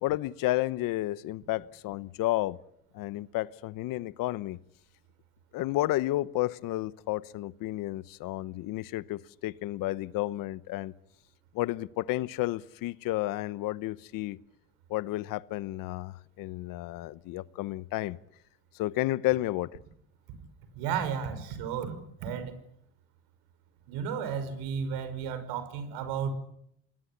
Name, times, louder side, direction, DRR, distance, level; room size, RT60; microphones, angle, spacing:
voice 1, 0.0-2.6 2.9-4.6 5.5-10.9 11.5-14.4 14.9-18.2 18.7-19.7, left 17 dB, 55° left, 1.0 m, -31 dB
voice 2, 20.8-22.5 23.9-26.3, right 7 dB, 70° right, 5.5 m, -33 dB
29.0 x 20.5 x 8.6 m
supercardioid pair, 120°, 40 cm